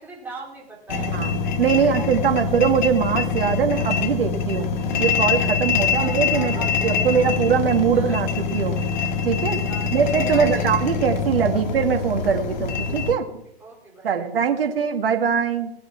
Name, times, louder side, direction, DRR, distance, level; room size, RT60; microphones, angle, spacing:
voice 1, 0.0-1.2 1.7-2.1 2.3-2.5 4.2-4.3 5.8-7.3 7.9-8.4 9.7-11.1 11.5-11.6 12.6-12.7 13.6-14.2 14.5-14.9, right 3 dB, 5° right, -3 dB, 4.3 m, -39 dB
sound 1, 0.9-13.1, left 5 dB, 45° left, 1.8 m, -24 dB
voice 2, 1.1-4.7 5.0-8.3 8.5-8.8 9.2-9.6 9.9-13.2 14.0-15.7, right 7 dB, 60° right, 4 dB, 2.1 m, -22 dB
16.5 x 8.3 x 7.3 m, 0.76 s
hypercardioid pair, 130°, 32 cm